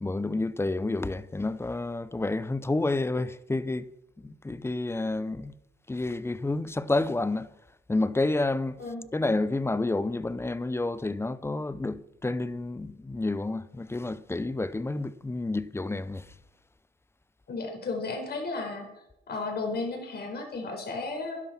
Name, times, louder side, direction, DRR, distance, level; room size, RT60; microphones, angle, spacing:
voice 1, 0.0-3.9 4.2-5.6 5.9-7.5 7.9-8.8 9.1-16.3, left 2 dB, 10° left, 0.6 m, -29 dB
voice 2, 17.5-18.9 19.3-21.4, left 3 dB, 55° left, 4.4 m, -33 dB
11.5 x 11.0 x 5.9 m
cardioid pair, 90°, 20 cm